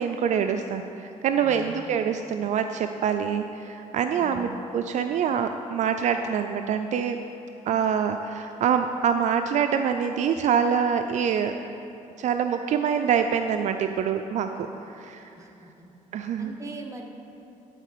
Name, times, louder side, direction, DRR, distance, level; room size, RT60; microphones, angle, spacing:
voice 1, 0.0-4.5 4.7-7.2 7.7-11.6 12.2-14.5 14.8-15.2 16.1-16.5, right 7 dB, 60° right, 7 dB, 0.4 m, -25 dB
voice 2, 1.4-1.8 4.2-4.5 15.3-15.9 16.4-17.0, right 2 dB, 20° right, 1 dB, 1.1 m, -41 dB
11.5 x 4.6 x 6.7 m, 3.0 s
cardioid pair, 105°, 14 cm